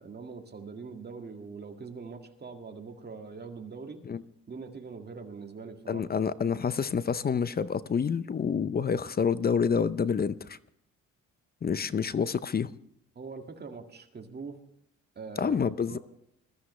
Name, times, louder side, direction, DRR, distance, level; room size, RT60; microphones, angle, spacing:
voice 1, 0.0-4.0 4.5-6.1 13.2-14.6 15.2-16.0, right 4 dB, 35° right, 2.1 m, -43 dB
voice 2, 5.9-10.6 11.6-12.7 15.4-16.0, left 6 dB, 30° left, 0.6 m, -28 dB
21.0 x 13.5 x 3.2 m
cardioid pair, 90°, 30 cm